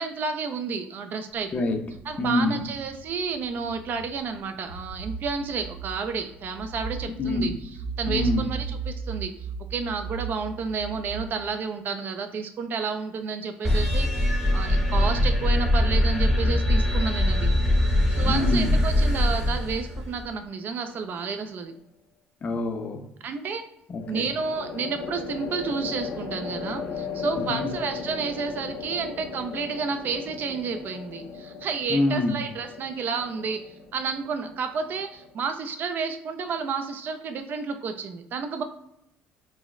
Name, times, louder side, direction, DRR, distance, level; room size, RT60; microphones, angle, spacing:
voice 1, 0.0-1.6 2.0-7.5 8.0-9.3 9.7-17.5 18.1-21.7 23.2-23.6 24.1-33.6 33.9-38.6, right 5 dB, 50° right, 7 dB, 0.4 m, -31 dB
sound 1, 1.5-11.3, right 5 dB, 80° right, 0.7 m, -36 dB
voice 2, 2.2-2.6 7.2-7.5 8.1-8.5 18.3-18.8 22.4-23.0 23.9-24.3 27.5-27.6 31.9-32.4, left 2 dB, 35° left, 4 dB, 0.4 m, -26 dB
sound 2, 13.6-20.2, left 1 dB, 10° right, 0.8 m, -22 dB
sound 3, 20.9-21.4 24.0-35.3, left 5 dB, 85° left, 0.5 m, -37 dB
3.9 x 2.0 x 2.2 m, 0.82 s
cardioid pair, 110°, 4 cm